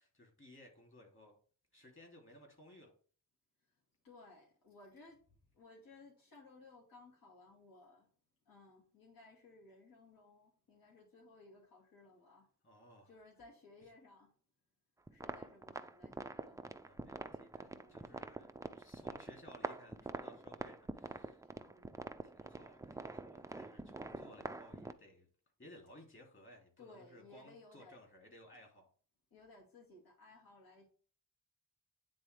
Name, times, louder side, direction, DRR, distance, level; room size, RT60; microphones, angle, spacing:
voice 1, 0.0-1.4 1.7-2.9 12.6-13.1 16.8-21.4 22.2-25.3 25.6-28.9, left 1 dB, 35° left, 2.8 m, -59 dB
voice 2, 4.0-5.2 5.5-8.1 8.5-12.5 13.1-14.3 15.1-16.6 17.7-18.1 21.5-22.1 24.2-24.5 26.8-28.0 29.3-30.9, left 2 dB, 75° left, 2.5 m, -60 dB
sound 1, 15.1-24.9, right 2 dB, 10° right, 0.3 m, -46 dB
9.5 x 3.8 x 3.3 m
wide cardioid pair, 125°, 35 cm